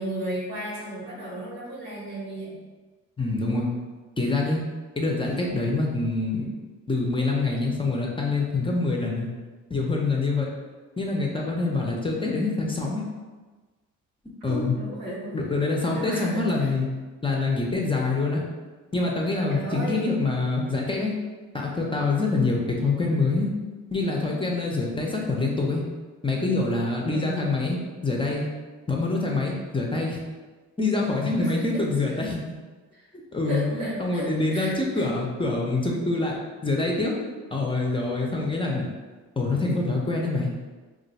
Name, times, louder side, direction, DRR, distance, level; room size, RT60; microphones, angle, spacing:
voice 1, 0.0-2.6 14.4-15.4 15.9-16.5 19.5-20.1 27.1-27.5 31.4-31.7 32.9-33.0 33.4-35.1, right 1 dB, 85° right, -5 dB, 1.2 m, -34 dB
voice 2, 3.2-3.7 4.2-4.6 5.0-6.5 6.9-9.3 9.7-10.5 11.0-13.0 14.4-14.7 15.3-16.9 17.2-18.4 18.9-21.2 21.5-23.5 23.9-25.8 26.2-27.8 28.0-28.5 28.9-30.2 30.8-32.4 33.3-36.4 36.6-37.2 37.5-38.9 39.4-40.5, left 3 dB, 15° left, -2 dB, 0.6 m, -25 dB
2.4 x 2.2 x 4.0 m, 1.3 s
cardioid pair, 90°, 30 cm